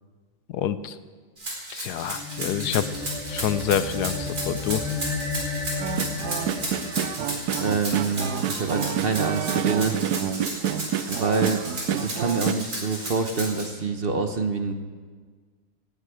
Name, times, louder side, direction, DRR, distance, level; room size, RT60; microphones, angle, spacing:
voice 1, 0.5-1.0 1.7-2.9 3.3-4.8, left 10 dB, 85° left, 13 dB, 1.3 m, -27 dB
Rattle (instrument), 1.4-13.6, right 1 dB, 65° right, 4.8 m, -33 dB
sound 1, 2.0-8.7, left 4 dB, ahead, 5.4 m, -33 dB
sound 2, 5.8-12.5, right 9 dB, 90° right, 1.2 m, -28 dB
voice 2, 7.6-10.0 11.1-11.6 11.9-14.7, right 4 dB, 40° right, 6 dB, 1.0 m, -26 dB
17.5 x 15.5 x 5.0 m, 1.5 s
omnidirectional pair, 1.7 m